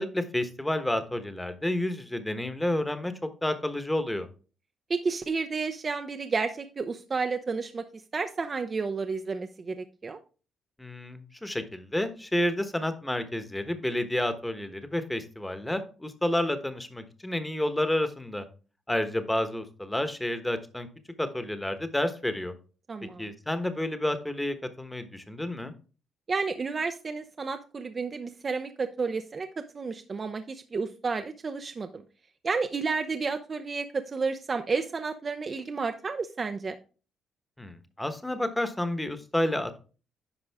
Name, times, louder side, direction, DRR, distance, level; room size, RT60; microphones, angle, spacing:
voice 1, 0.0-3.1 3.4-4.3 10.8-18.4 18.9-20.9 21.2-22.5 23.2-25.7 37.6-39.8, left 1 dB, 10° left, 9 dB, 1.1 m, -30 dB
voice 2, 4.9-7.8 8.1-10.2 22.9-23.3 26.3-32.0 32.4-36.8, right 4 dB, 35° right, 7 dB, 0.6 m, -31 dB
9.9 x 5.2 x 3.5 m, 0.36 s
cardioid pair, 90°, 0 cm